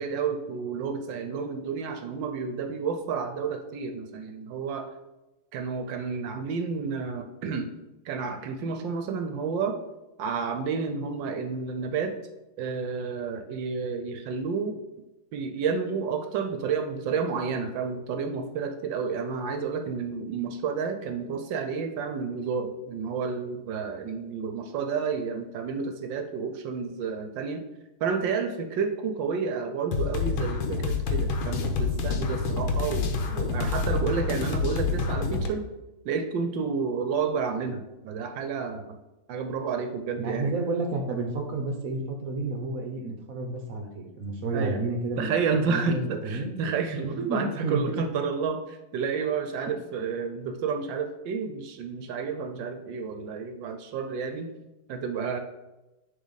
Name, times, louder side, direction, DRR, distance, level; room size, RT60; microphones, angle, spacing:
voice 1, 0.0-4.9 5.5-7.7 8.0-9.8 10.2-12.2 12.6-14.8 15.3-27.6 28.0-35.7 36.0-39.0 39.3-40.5 44.5-44.8 45.2-54.5 54.9-55.4, right 5 dB, 70° right, 6 dB, 1.3 m, -30 dB
sound 1, 29.9-35.5, left 4 dB, 90° left, 1.7 m, -27 dB
voice 2, 40.2-45.4 45.7-46.5 47.0-48.0, right 3 dB, 55° right, 3 dB, 1.1 m, -30 dB
10.5 x 3.8 x 4.0 m, 1.0 s
omnidirectional pair, 2.2 m